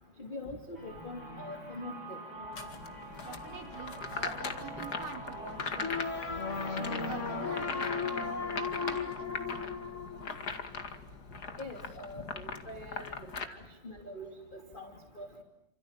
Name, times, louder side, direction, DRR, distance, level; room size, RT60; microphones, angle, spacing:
voice 1, 0.2-2.2 11.6-15.4, left 1 dB, 15° left, 4 dB, 2.0 m, -44 dB
sound 1, 0.7-10.5, right 1 dB, 20° right, 6.8 m, -45 dB
sound 2, 2.5-13.4, left 4 dB, 40° left, 1.5 m, -40 dB
voice 2, 3.2-6.1 6.3-9.8 10.3-10.5, right 4 dB, 70° right, 2 dB, 7.2 m, -46 dB
sound 3, 5.8-10.8, left 5 dB, 80° left, 0.6 m, -36 dB
30.0 x 27.5 x 7.3 m, 0.87 s
omnidirectional pair, 4.8 m